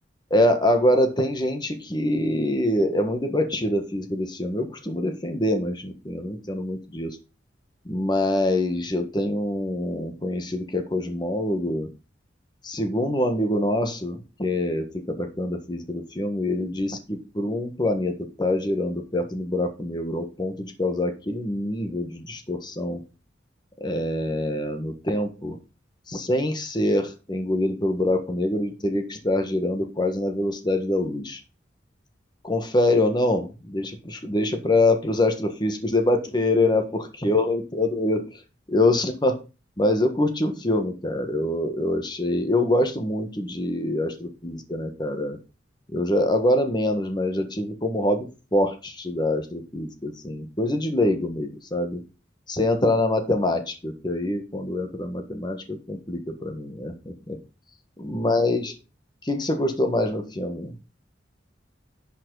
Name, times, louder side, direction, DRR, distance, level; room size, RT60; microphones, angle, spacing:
voice 1, 0.3-7.2 7.8-11.9 12.6-23.0 23.8-25.6 26.1-31.4 32.4-38.4 38.7-39.4 39.8-45.4 45.9-52.0 52.5-57.4 58.0-58.7 59.3-60.7, left 1 dB, 25° left, 6 dB, 1.5 m, -25 dB
11.0 x 5.9 x 4.0 m, 0.31 s
head